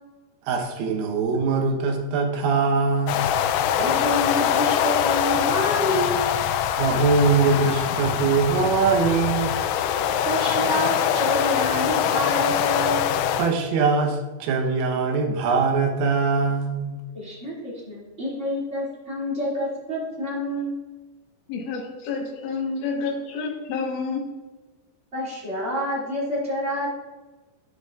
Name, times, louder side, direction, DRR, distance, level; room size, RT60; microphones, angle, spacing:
voice 1, 0.5-3.3 6.8-9.5 13.4-17.0, right 4 dB, 80° right, 2 dB, 3.7 m, -22 dB
sound 1, 3.1-13.5, left 9 dB, 90° left, 2.6 m, -23 dB
voice 2, 3.7-6.2 10.2-13.1 17.1-20.8 25.1-26.9, equal, 35° right, -7 dB, 1.1 m, -28 dB
voice 3, 21.5-24.2, left 4 dB, 70° left, 0 dB, 1.9 m, -29 dB
10.5 x 10.0 x 2.5 m, 1.2 s
omnidirectional pair, 5.9 m